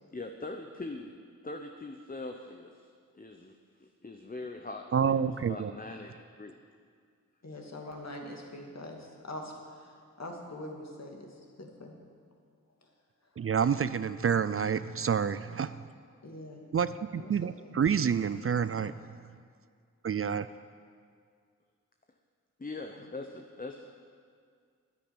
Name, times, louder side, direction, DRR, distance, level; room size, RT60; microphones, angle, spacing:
voice 1, 0.1-1.1 1.4-2.9 3.1-6.5 22.6-23.9, left 2 dB, 25° left, 4 dB, 1.0 m, -42 dB
voice 2, 4.9-5.7 13.4-15.8 16.7-18.9 20.0-20.5, right 7 dB, 45° right, 14 dB, 0.5 m, -28 dB
voice 3, 7.4-12.0 12.8-12.9 16.2-16.7 17.1-17.3 17.6-17.8 23.0-23.1, left 1 dB, 55° left, 0 dB, 2.6 m, -44 dB
10.0 x 9.9 x 8.8 m, 2.1 s
cardioid pair, 45°, 32 cm